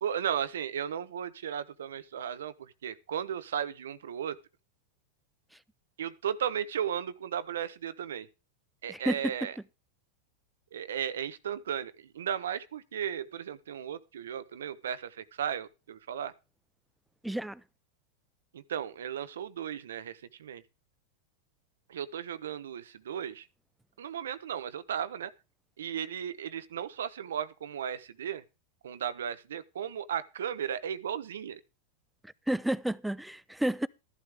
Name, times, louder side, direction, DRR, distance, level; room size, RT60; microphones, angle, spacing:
voice 1, 0.0-4.4 6.0-8.3 8.8-9.5 10.7-16.3 18.5-20.6 21.9-23.5 24.0-25.3 25.8-28.4 28.8-31.6, right 9 dB, 85° right, 1.0 m, -35 dB
voice 2, 8.9-9.3 17.2-17.6 32.2-33.9, right 1 dB, 5° right, 0.6 m, -31 dB
14.0 x 11.0 x 3.5 m
hypercardioid pair, 110°, 0 cm